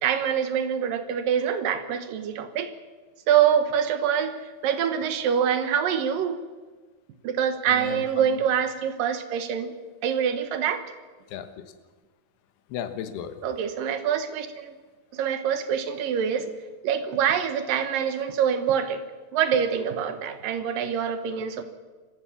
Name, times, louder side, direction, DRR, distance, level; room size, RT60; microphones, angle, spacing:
voice 1, 0.0-2.7 3.3-6.4 7.2-9.7 10.0-10.8 13.4-14.7 15.1-16.5 16.8-19.0 19.3-21.6, right 8 dB, 70° right, 10 dB, 2.7 m, -25 dB
voice 2, 7.7-8.4 11.3-11.6 12.7-13.4, left 9 dB, 80° left, 10 dB, 3.3 m, -35 dB
25.0 x 15.0 x 7.2 m, 1.4 s
omnidirectional pair, 4.6 m